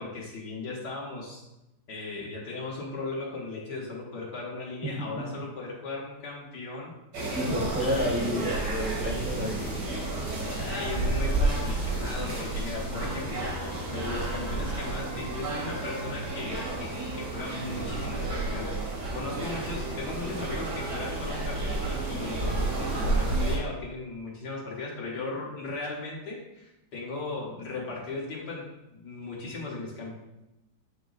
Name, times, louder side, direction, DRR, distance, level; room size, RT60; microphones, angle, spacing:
voice 1, 0.0-1.4 1.9-6.9 7.8-8.2 10.4-13.5 13.9-28.7 28.9-30.2, left 3 dB, 85° left, -5 dB, 1.9 m, -37 dB
voice 2, 4.8-5.2 7.3-9.9, equal, 10° right, -3 dB, 0.5 m, -30 dB
sound 1, 7.1-23.6, right 2 dB, 85° right, 2.3 m, -31 dB
sound 2, 9.8-15.1, left 4 dB, 65° left, 0.7 m, -44 dB
8.9 x 3.1 x 3.9 m, 0.92 s
omnidirectional pair, 1.8 m